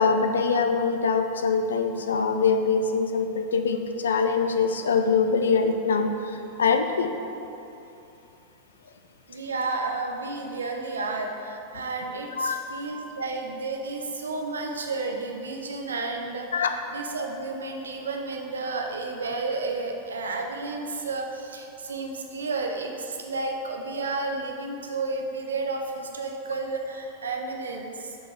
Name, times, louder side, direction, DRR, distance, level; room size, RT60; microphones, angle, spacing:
voice 1, 0.0-6.1 6.6-7.1 12.4-12.8 16.5-16.7, left 5 dB, 65° left, 6 dB, 0.4 m, -23 dB
voice 2, 9.3-16.7 16.9-28.2, right 3 dB, 70° right, 2 dB, 0.6 m, -32 dB
6.6 x 4.1 x 3.4 m, 2.8 s
figure-of-eight pair, 90°, 0 cm